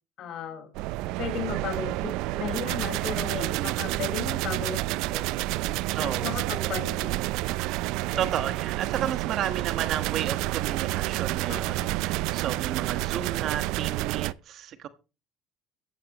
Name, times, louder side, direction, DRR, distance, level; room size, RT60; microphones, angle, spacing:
voice 1, 0.2-0.7 1.2-5.2 6.0-7.3 8.1-8.2 11.5-11.9, left 7 dB, 55° left, 4.9 m, -35 dB
sound 1, 0.7-14.3, right 18 dB, 70° right, 0.5 m, -29 dB
voice 2, 3.3-3.8 5.9-6.3 8.2-14.9, right 10 dB, 55° right, 1.3 m, -33 dB
15.0 x 14.0 x 3.0 m
supercardioid pair, 105°, 0 cm